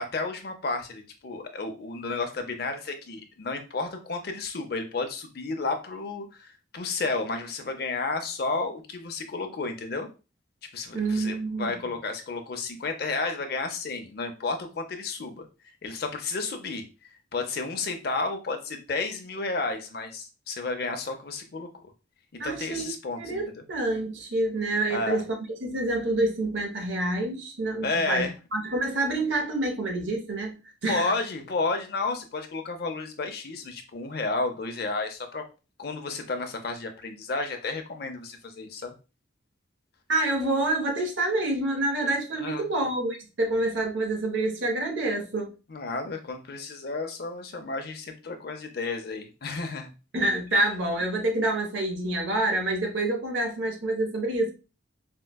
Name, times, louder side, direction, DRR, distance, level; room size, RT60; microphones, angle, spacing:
voice 1, 0.0-10.1 10.7-15.5 15.8-16.8 17.3-21.7 22.4-23.4 24.9-25.2 27.8-28.3 30.9-35.4 35.8-38.9 42.4-42.7 45.7-49.9, left 3 dB, 55° left, 0.5 m, -32 dB
voice 2, 10.9-11.7 22.4-22.9 23.2-28.3 28.5-30.5 30.8-31.1 40.1-45.5 50.1-54.5, right 2 dB, 75° right, 0.8 m, -27 dB
4.4 x 2.1 x 2.2 m
head